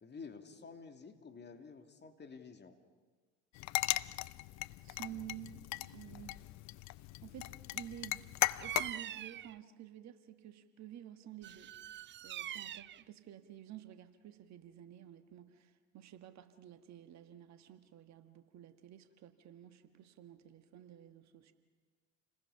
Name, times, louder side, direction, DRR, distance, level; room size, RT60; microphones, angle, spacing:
voice 1, 0.0-2.8, left 5 dB, 30° left, 5 dB, 2.6 m, -51 dB
sound 1, 3.6-8.9, left 18 dB, 50° left, 0.6 m, -38 dB
voice 2, 4.8-6.3 6.7-6.8 7.2-11.7 12.2-21.5, right 11 dB, 50° right, 9 dB, 1.6 m, -51 dB
Bird vocalization bird call bird song, 8.6-9.6 11.4-13.0, right 11 dB, 30° right, 0.6 m, -43 dB
29.5 x 20.5 x 5.7 m, 1.4 s
hypercardioid pair, 65°, 36 cm